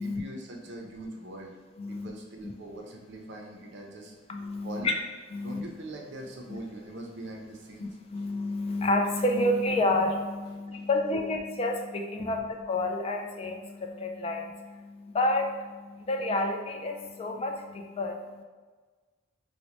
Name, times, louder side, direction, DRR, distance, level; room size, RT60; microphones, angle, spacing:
voice 1, 0.0-1.5 1.9-4.2 4.6-5.0 5.4-7.9 10.7-10.8 11.1-11.2 12.2-12.4, right 2 dB, 60° right, 1 dB, 0.5 m, -42 dB
voice 2, 1.8-2.1 2.4-2.5 4.3-4.9 5.3-5.6 6.5-6.6 7.8-18.4, left 2 dB, 30° left, 3 dB, 0.3 m, -30 dB
4.1 x 2.1 x 2.9 m, 1.4 s
head